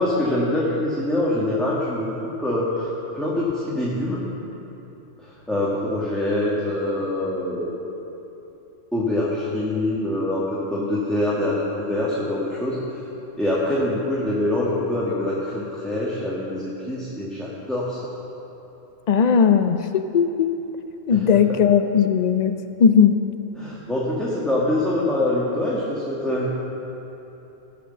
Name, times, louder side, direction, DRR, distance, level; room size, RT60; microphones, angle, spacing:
voice 1, 0.0-2.1 2.4-2.9 3.1-4.2 5.2-7.7 8.9-13.0 13.4-18.1 21.1-21.4 23.6-26.5, left 1 dB, ahead, -7 dB, 1.6 m, -24 dB
voice 2, 19.1-20.5 21.1-22.5 22.8-23.2, left 7 dB, 65° left, 8 dB, 0.4 m, -17 dB
17.5 x 6.0 x 6.7 m, 3.0 s
omnidirectional pair, 1.3 m